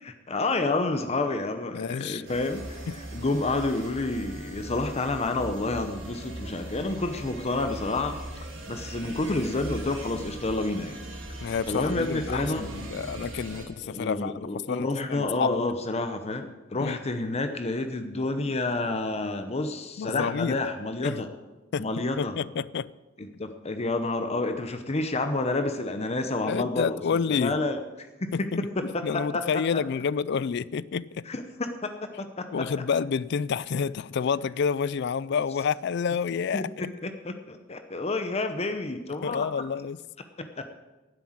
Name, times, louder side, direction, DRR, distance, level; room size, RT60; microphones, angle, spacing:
voice 1, 0.0-8.2 8.7-11.0 11.7-12.7 13.8-21.3 21.8-22.4 23.2-27.8 28.2-29.8 31.3-32.7 36.5-39.5 40.4-40.7, left 2 dB, 35° left, 0.8 m, -29 dB
voice 2, 1.7-2.2 11.4-14.4 14.7-15.6 16.8-17.0 20.0-20.6 21.0-21.2 21.7-22.9 26.5-27.6 28.3-31.2 32.5-36.9 39.2-40.0, left 6 dB, 60° left, 0.4 m, -29 dB
sound 1, 2.2-13.6, right 1 dB, 75° right, 3.2 m, -39 dB
10.5 x 7.8 x 8.7 m
head